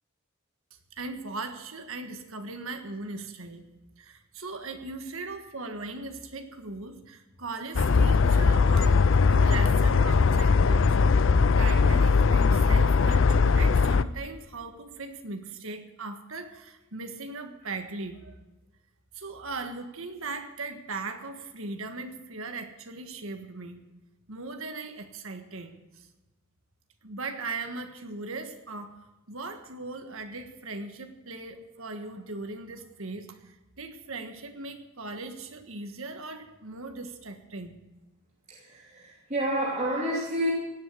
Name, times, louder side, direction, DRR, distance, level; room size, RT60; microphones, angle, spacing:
voice 1, 0.9-3.6 4.0-11.0 11.6-18.3 19.1-23.8 24.3-26.1 27.0-29.0 29.3-37.8, right 3 dB, 70° right, 6 dB, 1.6 m, -39 dB
sound 1, 7.8-14.0, left 4 dB, 60° left, 0.5 m, -20 dB
voice 2, 38.5-40.5, right 1 dB, 30° right, -5 dB, 2.9 m, -29 dB
17.0 x 8.1 x 8.4 m, 1.1 s
head